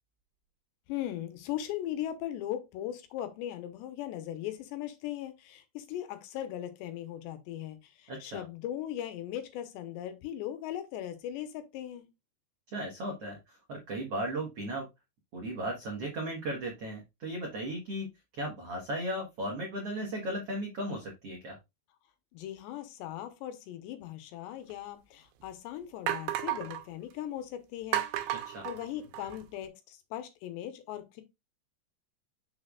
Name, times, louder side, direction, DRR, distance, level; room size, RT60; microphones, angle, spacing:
voice 1, 0.9-12.1 22.3-28.4 28.6-31.2, left 12 dB, 85° left, 3.1 m, -39 dB
voice 2, 8.1-8.4 12.7-14.9 15.3-21.6 28.4-28.6, right 1 dB, 65° right, 1.5 m, -36 dB
sound 1, 24.7-24.8 25.4-25.5 26.1-26.8 27.9-29.4, right 12 dB, 90° right, 2.9 m, -33 dB
6.8 x 6.6 x 2.3 m
omnidirectional pair, 5.0 m